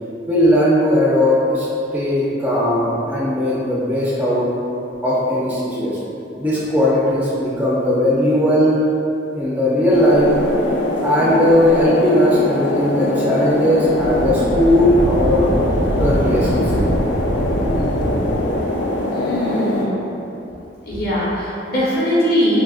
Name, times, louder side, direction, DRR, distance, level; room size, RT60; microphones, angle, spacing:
voice 1, 0.3-1.7 1.9-4.5 5.0-6.0 6.4-8.8 9.3-10.3 11.0-15.5 15.9-16.9, left 1 dB, 10° right, -8 dB, 0.3 m, -17 dB
sound 1, 9.9-19.9, left 1 dB, 75° left, 0.4 m, -22 dB
Wind, 13.9-18.6, equal, 70° right, 0.5 m, -23 dB
voice 2, 19.1-20.1 20.8-22.6, equal, 55° left, -8 dB, 0.8 m, -20 dB
3.5 x 2.3 x 2.3 m, 2.8 s
head